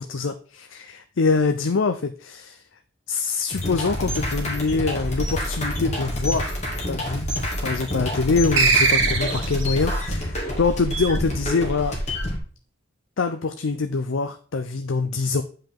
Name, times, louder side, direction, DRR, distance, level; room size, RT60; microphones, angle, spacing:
voice 1, 0.0-2.6 3.1-6.6 6.9-7.3 7.6-12.0 13.2-15.4, left 4 dB, 80° left, 8 dB, 0.6 m, -24 dB
sound 1, 3.5-12.4, left 1 dB, 35° left, 2.4 m, -27 dB
sound 2, 8.6-9.7, right 4 dB, 75° right, 1.8 m, -20 dB
8.8 x 5.5 x 3.7 m, 0.42 s
head